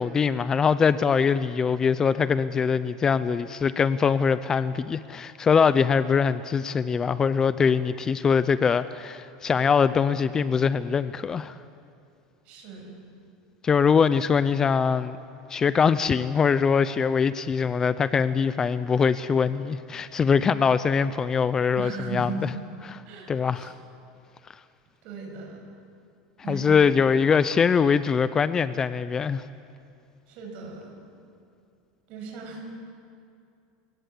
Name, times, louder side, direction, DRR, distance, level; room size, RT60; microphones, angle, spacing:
voice 1, 0.0-11.6 13.6-15.2 15.5-22.5 23.3-23.7 26.5-29.5, left 6 dB, 20° left, 14 dB, 0.5 m, -23 dB
voice 2, 12.5-13.0 21.7-22.5 23.1-23.7 25.0-25.6 26.4-26.7 30.3-30.9 32.1-32.8, right 4 dB, 50° right, 2 dB, 7.0 m, -37 dB
29.0 x 17.5 x 8.4 m, 2.4 s
supercardioid pair, 140°, 3 cm